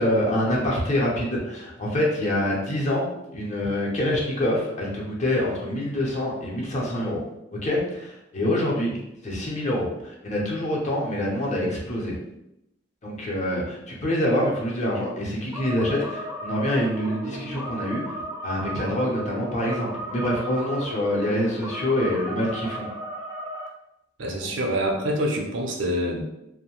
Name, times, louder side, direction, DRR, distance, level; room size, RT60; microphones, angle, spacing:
voice 1, 0.0-7.2 7.5-9.0 9.2-12.2 13.0-18.2 18.4-22.9 24.4-24.5, left 1 dB, 40° left, -3 dB, 0.7 m, -26 dB
sound 1, 15.5-23.7, right 1 dB, 15° right, 0.3 m, -35 dB
voice 2, 24.2-26.2, equal, 70° right, 0 dB, 0.5 m, -26 dB
2.6 x 2.1 x 2.9 m, 0.86 s
head